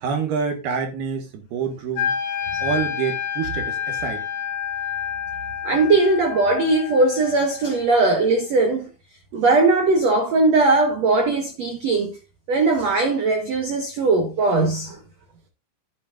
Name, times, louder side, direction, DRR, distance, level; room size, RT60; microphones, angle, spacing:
voice 1, 0.0-2.2 2.6-4.2, right 6 dB, 65° right, 3.3 m, -27 dB
Wind instrument woodwind instrument, 2.0-8.0, left 8 dB, 65° left, 3.1 m, -29 dB
voice 2, 5.6-8.9 9.3-12.2 12.5-15.0, right 3 dB, 85° right, 1.5 m, -19 dB
11.5 x 8.8 x 2.6 m
omnidirectional pair, 5.1 m